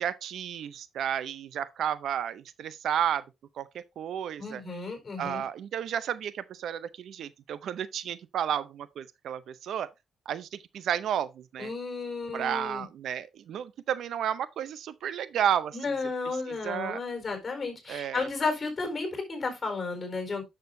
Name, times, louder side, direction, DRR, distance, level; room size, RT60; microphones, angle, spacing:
voice 1, 0.0-3.2 3.6-4.6 5.2-9.9 10.3-11.7 12.3-15.9 16.5-17.0 17.9-18.3, right 9 dB, 80° right, 0.6 m, -32 dB
voice 2, 4.4-5.4 11.6-12.8 15.7-20.4, left 4 dB, 35° left, 4.2 m, -33 dB
10.5 x 6.7 x 2.7 m
cardioid pair, 110°, 0 cm